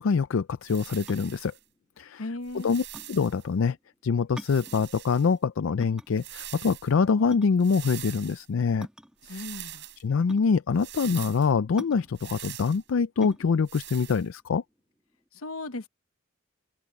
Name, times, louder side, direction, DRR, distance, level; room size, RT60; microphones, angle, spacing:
voice 1, 0.0-1.5 2.0-2.2 2.6-3.8 4.0-8.9 9.3-9.4 10.0-14.6, left 5 dB, 70° left, 0.4 m, -25 dB
sound 1, 0.6-1.6 2.4-3.4 4.4-5.3 6.1-6.9 7.6-8.5 9.2-10.0 10.8-11.5 12.1-12.8 13.7-14.3, right 13 dB, 55° right, 4.6 m, -43 dB
sound 2, 1.1-15.3, equal, 5° right, 2.2 m, -47 dB
voice 2, 2.2-2.7 9.3-9.9 15.3-15.9, left 2 dB, 85° left, 1.1 m, -36 dB
head